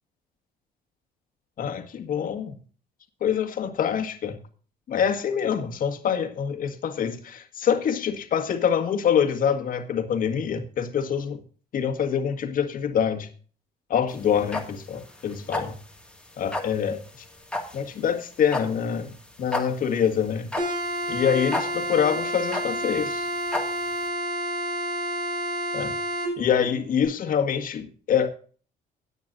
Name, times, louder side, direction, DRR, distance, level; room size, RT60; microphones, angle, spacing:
voice 1, 1.6-2.5 3.2-4.4 4.9-11.4 11.7-13.3 13.9-15.8 16.4-17.0 17.7-19.1 19.4-20.5 21.1-23.3 25.7-25.9 26.4-28.3, left 8 dB, 55° left, 1.9 m, -25 dB
sound 1, 14.1-24.1, left 2 dB, 5° left, 2.0 m, -34 dB
sound 2, 20.6-26.3, right 1 dB, 85° right, 5.7 m, -29 dB
17.0 x 9.3 x 2.6 m
cardioid pair, 110°, 17 cm